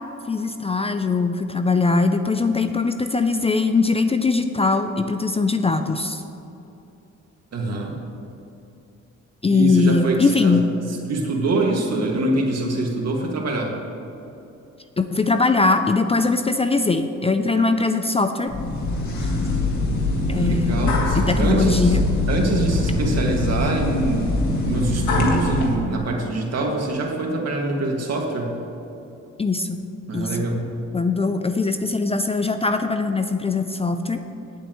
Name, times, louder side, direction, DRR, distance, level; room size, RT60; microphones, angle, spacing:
voice 1, 0.3-6.2 9.4-10.7 15.0-18.5 20.3-20.8 21.1-22.0 29.4-29.8 30.1-30.5 30.9-34.2, left 3 dB, 20° left, 8 dB, 0.5 m, -21 dB
voice 2, 7.5-7.9 9.5-10.6 11.1-13.7 20.3-22.0 22.3-24.3 24.6-28.6 30.1-30.7, right 2 dB, 55° right, 0 dB, 2.2 m, -24 dB
sound 1, 18.5-25.8, left 2 dB, 70° left, 2.1 m, -22 dB
18.0 x 8.1 x 3.1 m, 2.9 s
cardioid pair, 90°, 30 cm